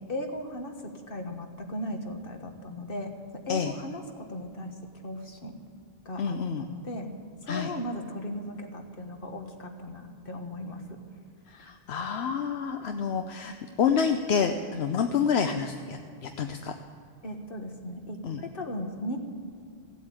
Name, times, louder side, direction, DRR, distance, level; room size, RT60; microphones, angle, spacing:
voice 1, 0.1-3.1 3.5-4.7 5.0-5.6 6.0-7.1 7.4-11.0 17.2-19.2, left 1 dB, 60° left, 5 dB, 1.6 m, -37 dB
voice 2, 6.2-6.7 7.5-7.7 11.5-16.7 18.2-18.4, left 6 dB, 80° left, 6 dB, 1.0 m, -28 dB
16.0 x 8.2 x 8.8 m, 2.4 s
omnidirectional pair, 1.1 m